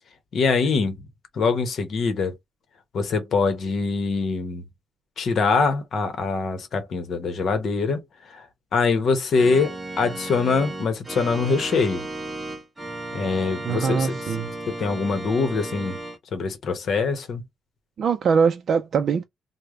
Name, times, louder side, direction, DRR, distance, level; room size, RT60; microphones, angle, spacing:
voice 1, 0.3-1.1 1.3-2.4 2.9-4.6 5.2-8.5 8.7-12.1 13.1-14.1 14.7-16.0 16.3-17.4, left 4 dB, 55° left, 0.9 m, -24 dB
Organ, 9.3-16.2, right 2 dB, 10° right, 0.7 m, -34 dB
voice 2, 13.6-14.5 18.0-19.2, right 6 dB, 50° right, 0.4 m, -22 dB
3.3 x 2.1 x 3.6 m
cardioid pair, 155°, 0 cm